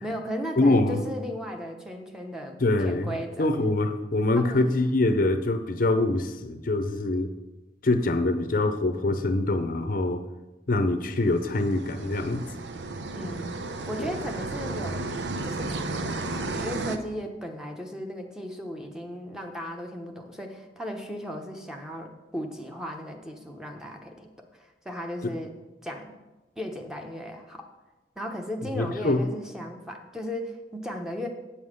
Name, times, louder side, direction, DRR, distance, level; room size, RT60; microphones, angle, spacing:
voice 1, 0.0-2.6 2.8-3.5 4.4-4.7 13.1-13.5 13.9-15.1 15.4-25.5 25.8-26.1 26.6-27.7 28.2-31.3, equal, 5° right, 3 dB, 0.9 m, -36 dB
voice 2, 0.6-1.0 2.6-7.3 7.8-10.2 10.7-12.5 14.0-14.1 25.2-25.3 28.6-29.2, left 2 dB, 50° left, 8 dB, 0.6 m, -24 dB
sound 1, 11.1-17.0, right 2 dB, 80° right, 0.7 m, -33 dB
8.6 x 5.5 x 6.4 m, 1.1 s
head